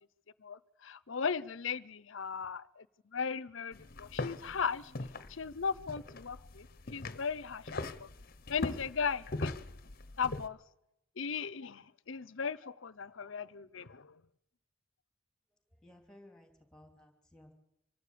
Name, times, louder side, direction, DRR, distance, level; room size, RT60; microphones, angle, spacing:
voice 1, 0.4-2.9 3.1-4.9 5.3-8.1 8.5-9.5 10.2-10.6 11.2-14.1, left 6 dB, 70° left, 0.7 m, -37 dB
sound 1, 3.7-10.5, left 2 dB, 45° left, 1.0 m, -41 dB
voice 2, 15.8-17.5, left 1 dB, 5° left, 3.0 m, -58 dB
25.5 x 12.0 x 8.5 m
head